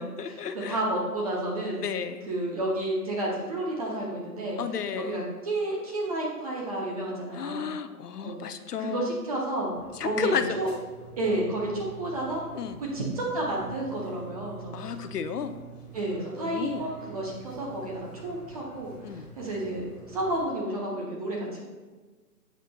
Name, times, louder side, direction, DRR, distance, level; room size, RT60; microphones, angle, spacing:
voice 1, 0.0-0.8 1.7-2.3 4.5-5.2 7.3-9.1 9.9-10.7 12.5-12.8 14.7-15.5 16.3-16.9 19.0-19.3, left 7 dB, 75° left, 9 dB, 0.8 m, -33 dB
voice 2, 0.7-1.8 2.3-4.6 4.9-7.7 8.2-8.4 8.8-9.7 10.0-10.7 11.2-12.4 12.8-14.7 15.9-18.9 19.4-21.6, right 1 dB, 25° right, -2 dB, 0.8 m, -31 dB
sound 1, 9.7-20.5, right 5 dB, ahead, 1.1 m, -47 dB
8.0 x 7.5 x 2.3 m, 1.3 s
hypercardioid pair, 150°, 47 cm